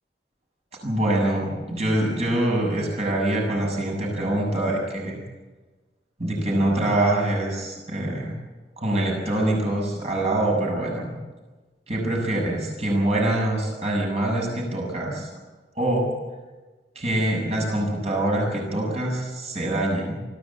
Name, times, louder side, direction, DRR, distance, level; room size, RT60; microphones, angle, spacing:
voice 1, 0.8-5.2 6.2-8.3 8.8-11.2 11.9-15.3 15.7-16.1 16.9-20.2, right 1 dB, 35° right, -1 dB, 6.8 m, -24 dB
24.0 x 15.0 x 8.5 m, 1.3 s
head